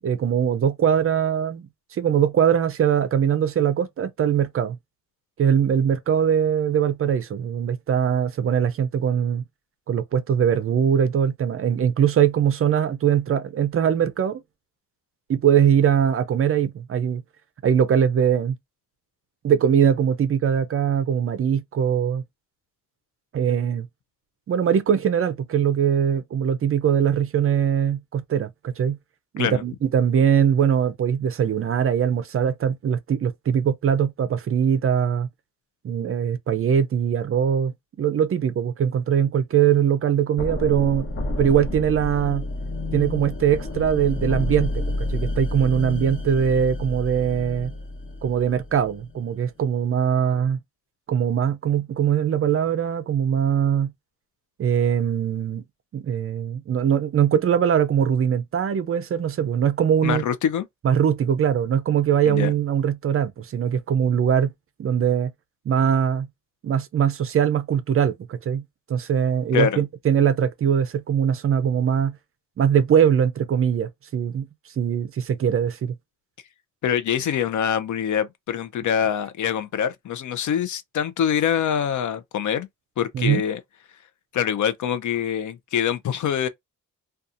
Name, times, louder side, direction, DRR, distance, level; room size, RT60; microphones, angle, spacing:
voice 1, 0.0-4.8 5.4-9.4 9.9-14.4 15.3-17.2 17.6-18.6 19.4-22.2 23.3-23.9 24.5-29.0 29.3-35.3 35.8-41.1 41.4-42.5 42.9-44.8 45.1-47.7 48.2-50.6 51.1-53.9 54.6-55.6 55.9-60.2 60.8-64.5 64.8-65.3 65.7-66.3 66.6-68.6 68.9-72.2 72.6-74.5 74.8-75.9 83.1-83.4, right 8 dB, 45° right, 0.4 m, -21 dB
sound 1, 40.4-49.2, left 2 dB, 40° left, 0.9 m, -30 dB
voice 2, 60.0-60.7 62.3-62.5 69.5-69.8 76.8-82.7 83.0-83.6 84.3-86.5, left 9 dB, 65° left, 0.5 m, -24 dB
2.7 x 2.3 x 2.5 m
wide cardioid pair, 155°, 33 cm